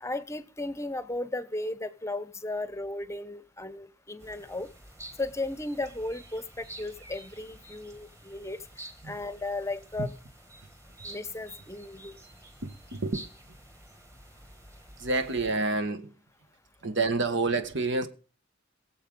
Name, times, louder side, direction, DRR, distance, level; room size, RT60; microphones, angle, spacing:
voice 1, 0.0-4.7 5.2-8.6 9.0-10.1 11.0-12.1, left 2 dB, 15° left, 0.8 m, -35 dB
sound 1, 4.2-15.5, right 1 dB, 15° right, 1.9 m, -49 dB
voice 2, 12.6-13.2 15.0-16.2 16.8-18.1, right 3 dB, 65° right, 1.4 m, -28 dB
22.5 x 7.6 x 3.8 m
head